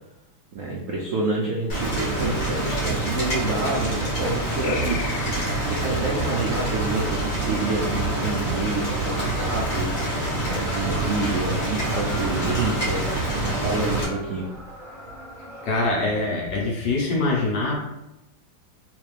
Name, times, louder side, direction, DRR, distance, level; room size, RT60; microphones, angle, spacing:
voice 1, 0.5-5.0 5.6-9.9 10.4-13.2 13.4-14.5, right 2 dB, 85° right, -3 dB, 0.7 m, -28 dB
Rain, 1.7-14.0, right 2 dB, 45° left, 1.6 m, -26 dB
sound 1, 4.6-7.6, left 5 dB, 90° left, 1.4 m, -37 dB
sound 2, 6.5-15.8, right 1 dB, 50° right, 1.1 m, -40 dB
voice 2, 15.6-17.8, left 2 dB, 60° left, -2 dB, 1.2 m, -24 dB
3.3 x 3.3 x 3.2 m, 0.92 s
omnidirectional pair, 2.2 m